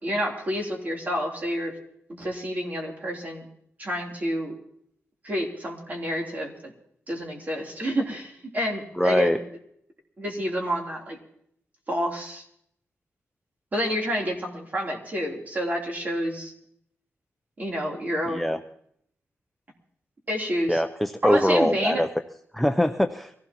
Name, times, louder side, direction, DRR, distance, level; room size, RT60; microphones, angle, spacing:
voice 1, 0.0-1.7 2.1-3.5 3.8-4.6 5.2-6.7 7.1-9.4 10.2-11.2 11.9-12.4 13.7-16.5 17.6-18.6 20.3-20.8 21.2-22.0, equal, 35° right, 0 dB, 3.3 m, -29 dB
voice 2, 9.0-9.4 18.3-18.6 20.7-22.1 22.5-23.3, left 1 dB, ahead, 6 dB, 0.5 m, -22 dB
24.0 x 16.0 x 3.0 m, 0.71 s
wide cardioid pair, 130°, 5 cm